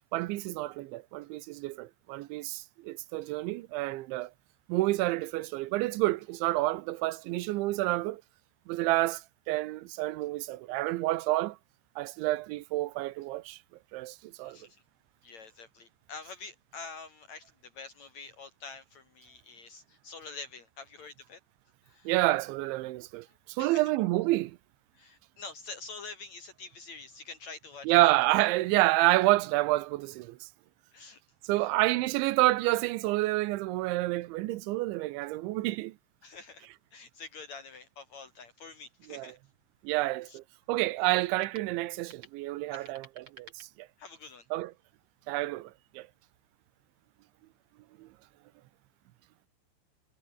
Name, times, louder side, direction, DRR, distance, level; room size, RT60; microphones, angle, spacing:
voice 1, 0.1-4.3 4.7-8.2 8.7-11.6 12.0-13.6 13.9-14.6 22.1-24.6 27.9-30.5 31.4-35.9 39.1-39.3 39.8-43.9 44.5-44.7 45.3-46.1 48.0-48.1, right 18 dB, 90° right, 3.2 m, -29 dB
voice 2, 14.4-14.8 15.2-21.4 21.8-22.1 23.6-23.8 24.9-28.1 30.9-31.2 31.6-32.0 36.2-39.4 40.3-40.4 42.7-42.9 44.0-44.5, left 4 dB, 55° left, 2.1 m, -46 dB
sound 1, 39.5-44.3, right 3 dB, 30° right, 6.0 m, -57 dB
omnidirectional pair, 5.2 m